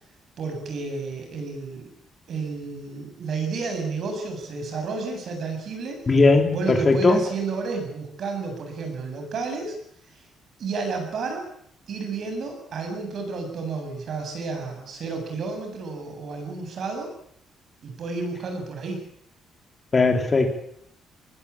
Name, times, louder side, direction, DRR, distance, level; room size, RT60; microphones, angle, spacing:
voice 1, 0.4-1.9 2.3-6.0 6.5-9.8 10.1-10.3 10.6-11.4 11.9-17.1 17.8-19.0, right 4 dB, 45° right, 4 dB, 8.0 m, -31 dB
voice 2, 6.1-7.2 19.9-20.6, left 3 dB, 20° left, 4 dB, 3.6 m, -18 dB
22.5 x 20.5 x 8.7 m, 0.68 s
cardioid pair, 170°, 0 cm